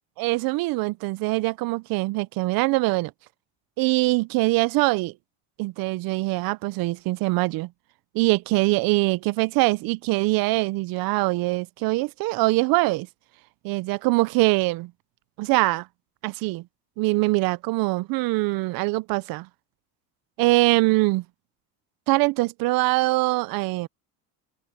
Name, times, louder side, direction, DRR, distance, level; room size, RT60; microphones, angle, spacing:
voice 1, 0.2-3.1 3.8-5.1 5.6-7.7 8.1-13.1 13.6-14.9 15.4-15.9 16.2-16.6 17.0-19.5 20.4-21.2 22.1-23.9, right 22 dB, 55° right, 0.5 m, -23 dB
open air
cardioid pair, 165°, 42 cm